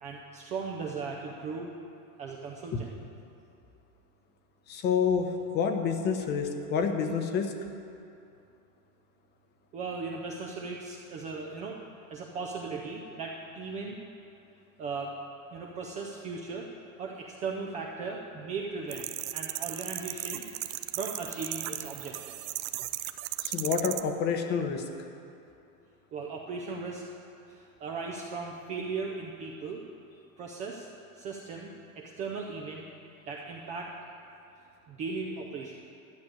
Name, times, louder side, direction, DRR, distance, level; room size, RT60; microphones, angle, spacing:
voice 1, 0.0-1.7 2.2-2.9 9.7-11.8 12.1-14.0 14.8-15.1 15.5-16.7 17.0-20.4 20.9-22.4 26.1-27.0 27.5-29.8 30.4-30.9 31.1-31.7 32.0-32.8 33.3-33.9 34.9-35.9, right 4 dB, 15° right, -1 dB, 0.4 m, -37 dB
voice 2, 4.7-7.5 23.4-24.8, left 6 dB, 25° left, 6 dB, 0.8 m, -28 dB
sound 1, 18.9-24.0, right 15 dB, 60° right, 0.7 m, -35 dB
11.5 x 6.8 x 9.7 m, 2.6 s
supercardioid pair, 155°, 44 cm